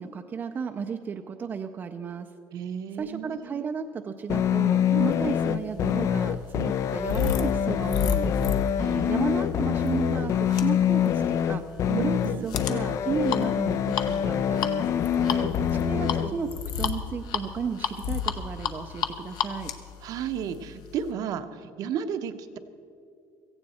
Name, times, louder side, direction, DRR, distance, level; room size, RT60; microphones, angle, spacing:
voice 1, 0.0-2.3 3.0-8.5 8.8-11.6 12.0-14.9 15.8-16.5 16.8-19.7, right 6 dB, 25° right, 6 dB, 0.5 m, -33 dB
voice 2, 2.5-3.6 4.9-5.1 8.8-9.2 11.9-12.5 15.2-16.4 20.0-22.6, right 8 dB, 50° right, 9 dB, 0.8 m, -34 dB
sound 1, 4.3-16.3, left 9 dB, 40° left, 0.4 m, -25 dB
sound 2, 5.4-21.1, left 8 dB, 55° left, 0.9 m, -33 dB
17.0 x 15.0 x 4.2 m, 2.5 s
cardioid pair, 160°, 8 cm